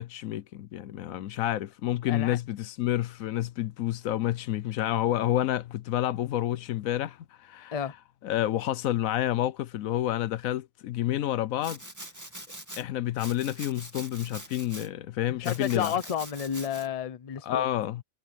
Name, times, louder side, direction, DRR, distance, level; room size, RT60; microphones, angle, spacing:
voice 1, 0.0-7.7 8.2-11.8 12.8-15.9 17.4-18.0, left 13 dB, 80° left, 1.1 m, -29 dB
Domestic sounds home sounds, 11.6-12.8 13.2-14.9 15.4-16.9, right 1 dB, 15° right, 2.2 m, -43 dB
voice 2, 15.3-17.6, left 8 dB, 35° left, 0.7 m, -31 dB
omnidirectional pair, 1.4 m